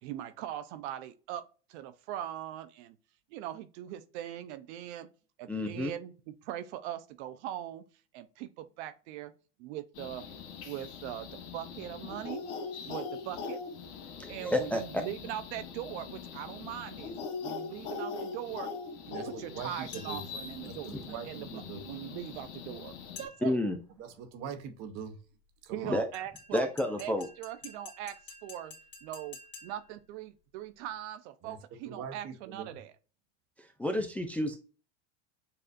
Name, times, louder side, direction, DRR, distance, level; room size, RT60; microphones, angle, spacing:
voice 1, 0.0-3.0 3.3-5.1 5.4-7.8 8.1-9.3 9.6-10.3 10.6-12.4 12.8-13.6 14.3-17.1 17.4-18.7 19.3-23.6 25.7-26.7 27.0-28.7 29.0-32.9, right 12 dB, 70° right, 0.6 m, -41 dB
voice 2, 5.5-5.9 14.2-15.0 23.4-23.8 25.8-26.1 26.5-27.3 33.6-34.6, left 1 dB, 5° left, 0.4 m, -30 dB
sound 1, 10.0-23.3, left 5 dB, 80° left, 1.5 m, -42 dB
voice 3, 19.1-20.2 20.6-21.8 24.0-25.2 25.6-26.2 31.4-31.6 31.9-32.8, right 6 dB, 45° right, 1.0 m, -43 dB
sound 2, 19.9-20.4 23.2-23.7 26.1-30.0, left 4 dB, 30° left, 2.1 m, -50 dB
6.7 x 2.4 x 2.5 m
supercardioid pair, 120°, 35 cm